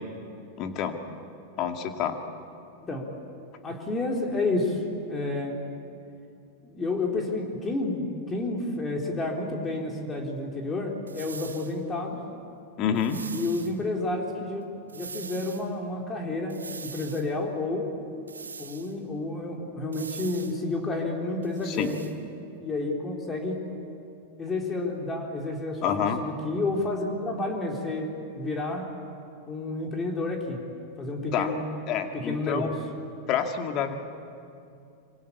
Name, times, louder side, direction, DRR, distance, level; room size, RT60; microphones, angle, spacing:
voice 1, 0.6-1.0 1.6-2.2 12.8-13.2 21.7-21.9 25.8-26.2 31.3-31.5 31.9-32.8 33.3-34.0, left 8 dB, 35° left, 5 dB, 2.3 m, -28 dB
voice 2, 3.6-5.6 6.6-12.2 13.3-14.7 14.9-17.9 18.6-22.1 22.6-23.6 24.4-28.9 29.5-30.6 31.0-31.7 32.1-32.7, left 2 dB, 20° left, 1 dB, 3.9 m, -30 dB
sound 1, 11.1-11.8 13.0-13.7 14.9-15.7 16.5-17.3 18.3-18.9 19.9-20.6 21.4-22.1, right 5 dB, 75° right, 1.5 m, -42 dB
26.5 x 25.5 x 8.6 m, 2.5 s
figure-of-eight pair, 90°, 0 cm